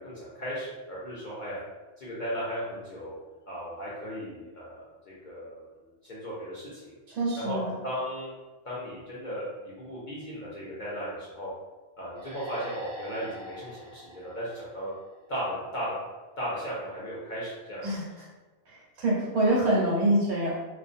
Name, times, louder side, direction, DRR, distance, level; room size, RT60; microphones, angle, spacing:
voice 1, 0.0-1.6 2.0-3.2 3.5-5.6 6.0-7.0 7.3-7.6 7.8-8.3 8.6-11.5 12.0-14.9 15.3-15.9 16.4-17.8, equal, 55° left, -8 dB, 0.6 m, -36 dB
voice 2, 7.1-7.7 17.8-18.0 18.7-20.5, right 1 dB, 65° right, -4 dB, 0.9 m, -25 dB
sound 1, 12.1-15.6, right 1 dB, 50° right, 0.5 m, -45 dB
2.4 x 2.1 x 2.5 m, 1.2 s
omnidirectional pair, 1.3 m